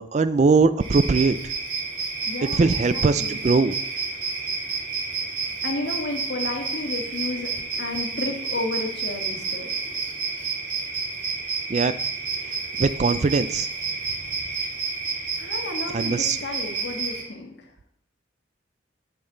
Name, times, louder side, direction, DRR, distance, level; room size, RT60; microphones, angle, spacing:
voice 1, 0.0-1.5 2.5-3.8 11.7-11.9 12.8-13.7 15.9-16.4, right 4 dB, 35° right, 14 dB, 0.4 m, -21 dB
sound 1, 0.8-17.2, right 4 dB, 85° right, 3.2 m, -30 dB
voice 2, 2.2-3.4 5.6-7.5 7.8-9.7 15.4-17.7, left 2 dB, 60° left, 3 dB, 1.6 m, -32 dB
8.9 x 8.6 x 3.9 m, 0.71 s
head